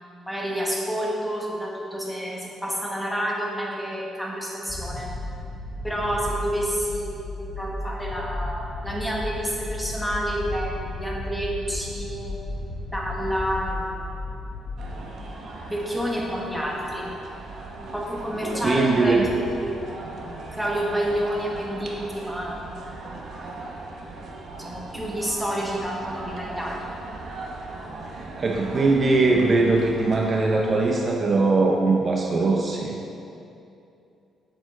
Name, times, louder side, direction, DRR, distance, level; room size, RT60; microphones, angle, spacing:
voice 1, 0.3-5.1 5.8-12.3 12.9-14.1 15.7-17.1 17.8-19.7 20.5-22.7 24.6-26.9, equal, ahead, -3 dB, 1.5 m, -29 dB
sound 1, 4.7-15.0, left 2 dB, 45° left, 1.8 m, -34 dB
sound 2, 14.8-31.1, right 2 dB, 65° right, 1.1 m, -38 dB
voice 2, 18.6-19.3 28.4-33.0, right 3 dB, 40° right, 1 dB, 0.6 m, -21 dB
7.3 x 6.9 x 3.9 m, 2.7 s
cardioid pair, 90°, 0 cm